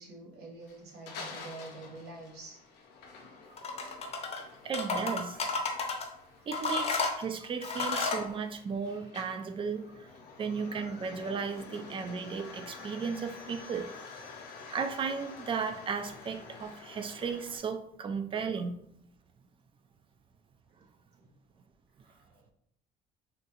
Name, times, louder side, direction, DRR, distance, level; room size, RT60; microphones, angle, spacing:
voice 1, 0.0-2.6 21.2-21.3 22.0-22.5, right 2 dB, 75° right, -2 dB, 1.1 m, -47 dB
sound 1, 0.6-17.6, left 4 dB, 75° left, 0.6 m, -49 dB
sound 2, 3.6-4.4 4.7-6.1 6.5-8.3, left 3 dB, 40° left, 0.6 m, -32 dB
voice 2, 4.6-5.4 6.5-10.1 10.4-13.9 14.7-18.7, right 5 dB, 30° right, 8 dB, 0.4 m, -35 dB
3.8 x 2.3 x 2.8 m, 0.71 s
cardioid pair, 110°, 17 cm